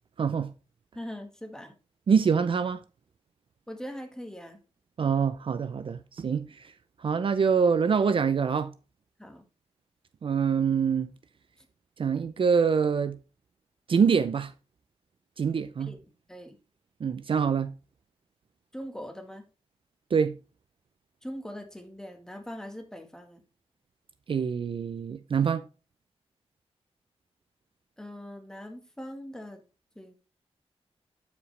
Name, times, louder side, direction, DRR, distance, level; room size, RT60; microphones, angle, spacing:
voice 1, 0.2-0.5 2.1-2.8 5.0-6.7 7.0-8.7 10.2-11.1 12.0-13.2 13.9-14.5 15.4-15.9 17.0-17.7 20.1-20.3 24.3-25.6, right 6 dB, 55° right, 0.5 m, -25 dB
voice 2, 0.9-1.7 3.7-4.6 9.2-9.4 15.9-16.6 18.7-19.5 21.2-23.4 28.0-29.6 29.9-30.1, equal, 5° left, 1.6 m, -41 dB
12.0 x 5.1 x 3.2 m
wide cardioid pair, 130°, 11 cm